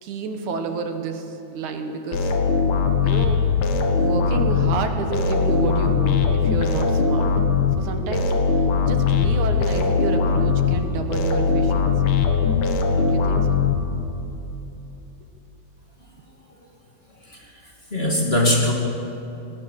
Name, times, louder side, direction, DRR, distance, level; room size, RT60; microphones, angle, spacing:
voice 1, 0.0-2.4 3.0-3.4 3.9-7.3 7.8-8.3 8.9-12.1 13.0-13.6, right 5 dB, 85° right, 6 dB, 2.9 m, -29 dB
sound 1, 2.1-14.3, left 5 dB, 75° left, 2.8 m, -21 dB
voice 2, 17.9-18.7, left 1 dB, 20° left, -1 dB, 2.3 m, -21 dB
19.0 x 18.5 x 7.5 m, 2.9 s
omnidirectional pair, 3.3 m